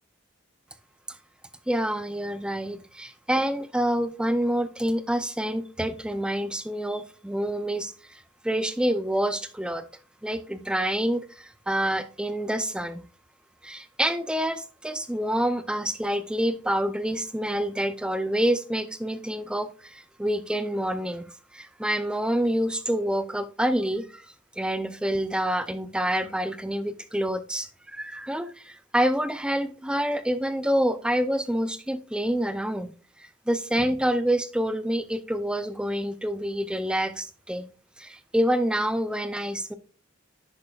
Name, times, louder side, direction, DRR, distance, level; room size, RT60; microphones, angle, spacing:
voice 1, 1.7-9.8 10.2-13.0 13.6-24.3 24.6-32.9 33.2-37.7 38.0-39.7, right 1 dB, 5° right, 0.4 m, -27 dB
10.5 x 6.4 x 2.3 m
head